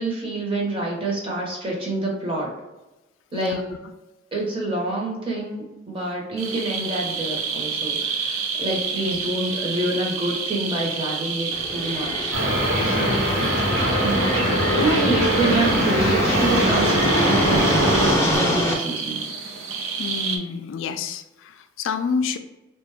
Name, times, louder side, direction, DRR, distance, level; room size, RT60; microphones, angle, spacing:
voice 1, 0.0-2.5 3.3-3.6 4.3-12.3 14.0-19.4, right 2 dB, 25° right, -2 dB, 0.8 m, -27 dB
voice 2, 3.3-3.7 9.0-9.2 12.8-13.3 14.4-15.1 20.0-22.4, left 5 dB, 75° left, 8 dB, 0.3 m, -29 dB
sound 1, 6.4-20.4, right 5 dB, 80° right, 0.5 m, -29 dB
sound 2, 11.5-18.7, left 1 dB, 15° left, 0.5 m, -25 dB
sound 3, 12.3-18.1, equal, 60° right, 1.1 m, -22 dB
3.7 x 2.2 x 3.4 m, 1.0 s
head